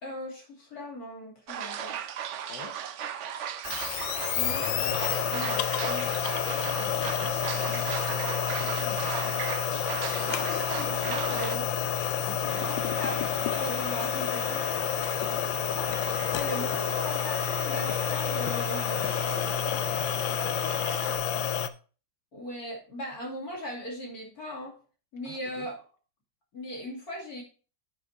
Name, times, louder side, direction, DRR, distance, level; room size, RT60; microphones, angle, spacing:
voice 1, 0.0-2.0 4.3-4.9 5.3-6.1 10.4-11.7 12.5-14.7 16.3-19.3 22.3-24.7 25.1-25.7 26.5-27.4, left 1 dB, 50° left, -1 dB, 3.3 m, -38 dB
sound 1, 1.5-11.6, right 9 dB, 75° right, 0.6 m, -36 dB
voice 2, 2.5-2.8 4.4-4.8 6.5-9.4 12.3-12.6 15.2-15.5 19.7-21.1 25.2-25.7, left 6 dB, 70° left, 6 dB, 1.7 m, -46 dB
sound 2, 3.6-21.7, left 10 dB, 90° left, 1.3 m, -29 dB
sound 3, 12.4-21.2, right 3 dB, 40° right, 1.7 m, -40 dB
9.4 x 5.0 x 4.6 m, 0.38 s
omnidirectional pair, 2.0 m